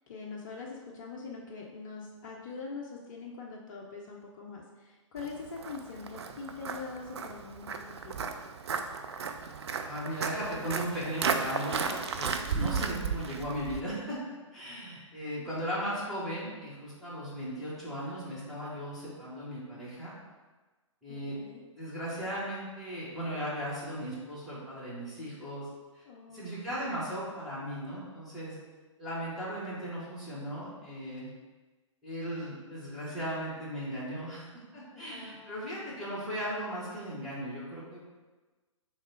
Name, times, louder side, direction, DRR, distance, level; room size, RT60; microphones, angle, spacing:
voice 1, 0.1-8.4 12.6-12.9 21.1-21.7 26.0-26.8 34.9-35.9, left 4 dB, 35° left, -2 dB, 0.5 m, -43 dB
Walk footsteps, 5.2-13.8, right 5 dB, 55° right, 0.4 m, -34 dB
voice 2, 9.8-14.2 14.5-20.1 21.0-21.3 21.7-25.7 25.9-26.0 26.3-28.6 29.0-31.3 32.0-34.4 34.7-38.0, equal, ahead, -11 dB, 1.4 m, -37 dB
3.5 x 3.1 x 4.3 m, 1.3 s
figure-of-eight pair, 120°, 16 cm